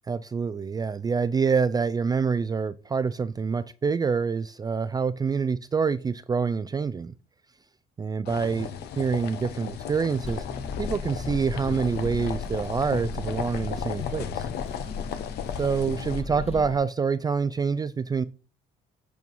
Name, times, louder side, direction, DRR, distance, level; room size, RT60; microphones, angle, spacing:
voice 1, 0.1-7.1 8.0-8.7 9.0-10.4 10.8-14.5 15.6-18.2, right 5 dB, 25° right, 0.4 m, -26 dB
sound 1, 8.2-16.2, left 9 dB, 75° left, 0.9 m, -36 dB
sound 2, 10.2-16.8, left 4 dB, 35° left, 1.3 m, -36 dB
8.4 x 4.6 x 5.3 m
cardioid pair, 110°, 17 cm